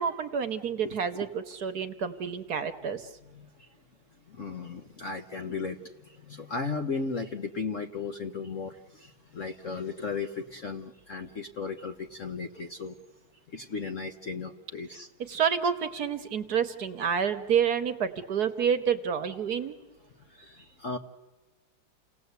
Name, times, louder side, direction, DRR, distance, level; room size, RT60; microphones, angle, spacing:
voice 1, 0.0-3.0 15.3-19.7, right 7 dB, 55° right, 9 dB, 1.3 m, -28 dB
voice 2, 0.8-1.3 4.4-5.8 6.3-8.7 9.3-12.9 13.5-15.1 20.4-21.0, left 4 dB, 50° left, 6 dB, 1.1 m, -35 dB
29.0 x 18.5 x 8.1 m, 1.2 s
omnidirectional pair, 2.3 m